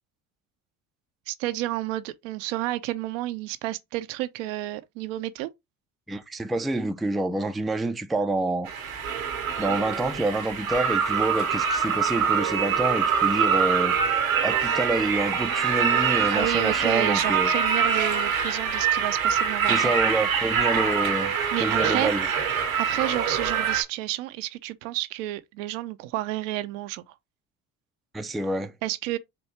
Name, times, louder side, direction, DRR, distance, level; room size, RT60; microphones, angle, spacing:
voice 1, 1.3-5.5 16.2-19.9 21.5-22.1 22.8-27.1 28.8-29.2, right 15 dB, 70° right, 0.5 m, -30 dB
voice 2, 6.1-8.7 9.6-14.0 14.4-17.5 19.7-22.3 28.1-28.7, right 2 dB, ahead, 0.3 m, -27 dB
sound 1, 8.7-23.8, right 7 dB, 90° right, 1.1 m, -24 dB
4.3 x 2.7 x 3.2 m
hypercardioid pair, 60°, 40 cm